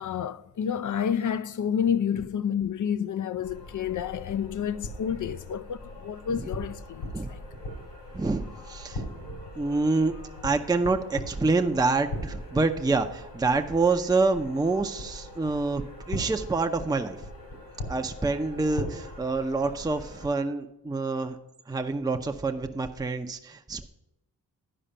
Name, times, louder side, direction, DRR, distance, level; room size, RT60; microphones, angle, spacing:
voice 1, 0.0-7.4, left 8 dB, 45° left, 0.5 m, -29 dB
sound 1, 3.4-20.3, left 1 dB, 90° left, 3.5 m, -40 dB
voice 2, 8.1-9.0 9.6-10.1 10.4-17.2 17.9-21.4 21.7-23.9, right 3 dB, 10° right, 0.6 m, -27 dB
10.0 x 4.9 x 5.5 m
supercardioid pair, 45°, 44 cm